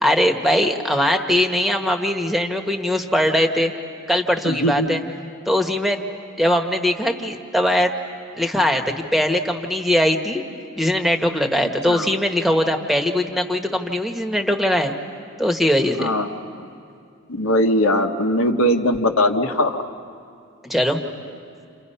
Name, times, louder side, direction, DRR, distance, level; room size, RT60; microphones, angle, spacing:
voice 1, 0.0-3.7 4.1-5.0 5.5-6.0 6.4-7.9 8.3-10.4 10.8-14.9 15.4-16.1 20.6-21.0, left 1 dB, ahead, 5 dB, 1.3 m, -20 dB
voice 2, 4.4-5.0 11.9-12.1 16.0-16.3 17.3-19.8, left 1 dB, 85° left, 2 dB, 1.2 m, -20 dB
29.0 x 29.0 x 5.6 m, 2.4 s
head